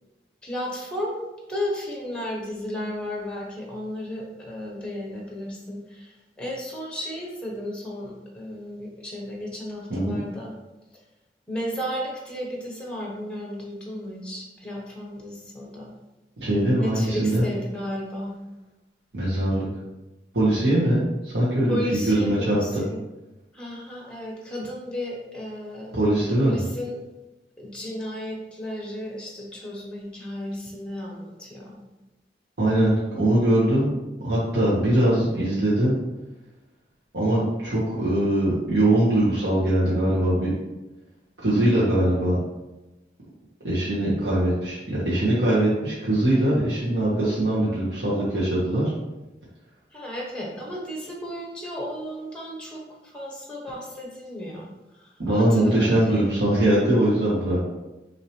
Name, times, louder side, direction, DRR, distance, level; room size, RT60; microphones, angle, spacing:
voice 1, 0.4-1.2 1.5-10.5 11.5-15.9 16.8-18.4 21.7-23.0 23.5-27.0 27.6-31.8 49.9-54.7 55.0-56.3 56.6-56.9, left 1 dB, 5° left, -2 dB, 1.0 m, -34 dB
voice 2, 16.4-17.4 19.1-19.7 20.3-22.8 25.9-26.6 32.6-33.9 34.2-36.0 37.1-40.5 41.4-42.4 43.6-48.9 55.2-57.6, right 1 dB, 85° right, -9 dB, 1.3 m, -22 dB
5.7 x 3.0 x 3.1 m, 1.1 s
head